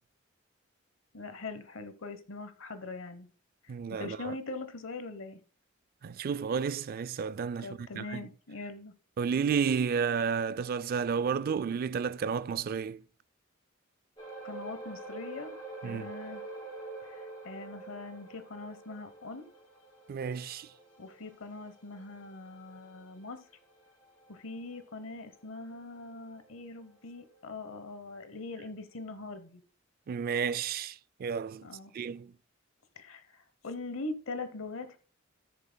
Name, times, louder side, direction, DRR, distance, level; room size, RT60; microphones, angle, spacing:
voice 1, 1.1-3.3 3.6-5.4 7.6-8.9 14.4-15.6 15.8-16.4 17.1-19.5 21.0-23.4 24.3-29.6 31.6-31.9 33.0-35.0, left 3 dB, 75° left, 0.9 m, -42 dB
voice 2, 3.7-4.3 6.0-8.3 9.2-13.0 15.8-16.1 20.1-20.7 30.1-31.7 31.9-32.3, right 6 dB, 45° right, 0.3 m, -32 dB
sound 1, 14.2-26.9 27.2-27.4 27.9-28.0, right 2 dB, 25° left, 5.2 m, -47 dB
18.0 x 6.9 x 2.2 m
head